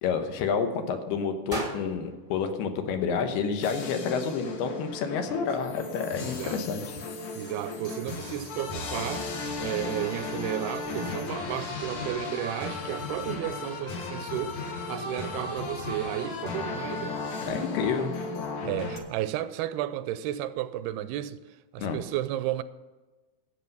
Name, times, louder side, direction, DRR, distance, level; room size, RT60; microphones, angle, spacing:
voice 1, 0.0-7.0 17.5-18.1 21.8-22.0, left 6 dB, 85° left, 3.1 m, -29 dB
sound 1, 1.5-3.6, right 2 dB, 35° right, 0.5 m, -40 dB
sound 2, 3.6-19.0, left 3 dB, 55° left, 2.4 m, -35 dB
voice 2, 6.2-6.6 7.4-9.3 9.6-14.6 14.9-17.2 18.6-21.4 21.7-22.6, right 13 dB, 85° right, 2.5 m, -33 dB
13.5 x 8.2 x 5.4 m
omnidirectional pair, 4.5 m